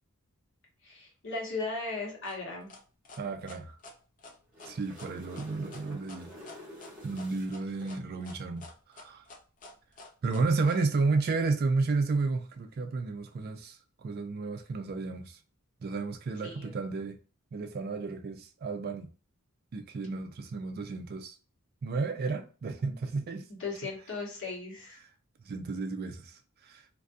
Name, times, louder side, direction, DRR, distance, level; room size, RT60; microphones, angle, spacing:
voice 1, 0.8-2.7 16.4-16.8 23.5-25.0, left 3 dB, 60° left, 1.2 m, -37 dB
sound 1, 2.2-10.8, left 3 dB, 35° left, 0.5 m, -50 dB
voice 2, 3.2-3.8 4.7-6.3 7.0-8.7 8.9-9.3 10.2-15.4 15.8-17.2 17.5-19.1 19.7-21.3 21.8-23.5 25.5-26.8, right 3 dB, 45° right, 0.3 m, -32 dB
sound 2, 4.3-7.9 11.7-11.9, equal, 5° right, 1.3 m, -49 dB
2.6 x 2.5 x 2.2 m
head